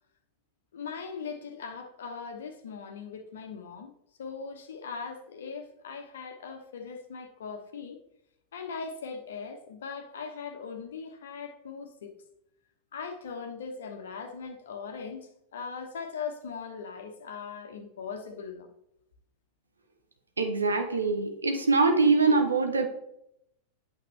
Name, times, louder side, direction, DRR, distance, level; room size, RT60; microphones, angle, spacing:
voice 1, 0.7-3.9 4.2-8.0 8.5-12.1 12.9-18.7, left 5 dB, 65° left, 1.1 m, -40 dB
voice 2, 20.4-22.9, right 3 dB, 75° right, 0.9 m, -23 dB
8.6 x 6.5 x 3.3 m
figure-of-eight pair, 90°, 0 cm